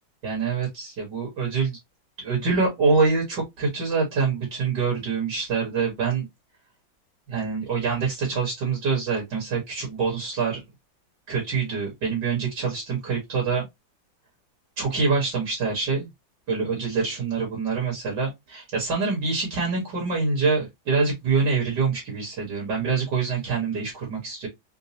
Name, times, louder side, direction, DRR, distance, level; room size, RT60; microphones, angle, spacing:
voice 1, 0.2-1.8 2.2-6.2 7.3-10.6 11.3-13.6 14.8-16.1 16.5-24.5, right 4 dB, 60° right, 2.2 m, -25 dB
4.6 x 2.3 x 2.7 m
omnidirectional pair, 2.1 m